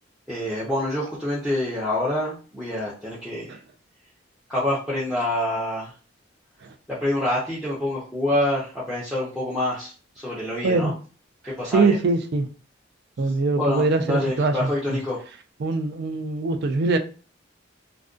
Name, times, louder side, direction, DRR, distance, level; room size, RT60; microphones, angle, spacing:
voice 1, 0.3-3.5 4.5-5.9 6.9-10.9 11.5-12.0 13.6-15.2, left 1 dB, 5° right, 0.5 m, -26 dB
voice 2, 11.7-12.5 13.2-15.0 15.6-17.0, right 3 dB, 55° right, 0.4 m, -22 dB
2.4 x 2.1 x 2.4 m
head